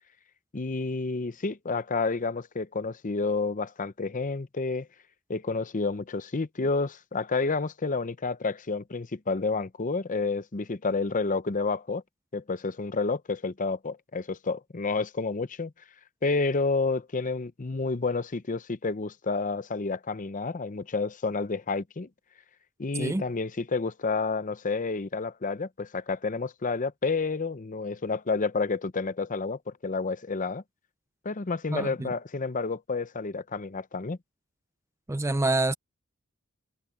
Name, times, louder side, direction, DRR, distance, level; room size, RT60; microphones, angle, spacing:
voice 1, 0.5-4.9 5.3-12.0 12.3-15.7 16.2-22.1 22.8-30.6 31.2-34.2, left 4 dB, 35° left, 0.7 m, -30 dB
voice 2, 31.7-32.1 35.1-35.7, right 2 dB, 15° right, 0.5 m, -27 dB
head